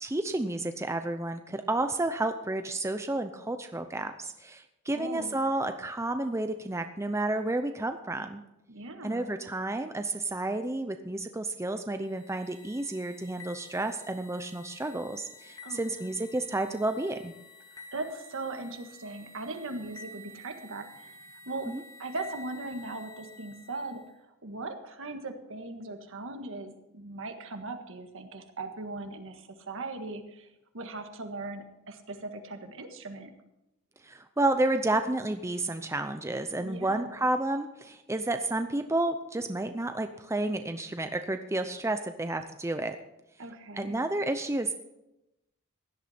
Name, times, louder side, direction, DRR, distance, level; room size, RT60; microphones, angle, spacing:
voice 1, 0.0-8.4 9.0-17.3 21.7-21.8 34.0-43.0 43.8-44.7, right 2 dB, 15° right, 7 dB, 0.6 m, -31 dB
voice 2, 4.9-5.4 8.7-9.3 15.6-16.2 17.7-21.7 22.0-24.0 24.4-30.5 30.7-33.3 36.6-37.2 43.4-43.9, right 2 dB, 65° right, 6 dB, 1.7 m, -39 dB
sound 1, 12.0-24.1, left 3 dB, 15° left, 1.6 m, -51 dB
17.0 x 11.5 x 4.4 m, 0.90 s
head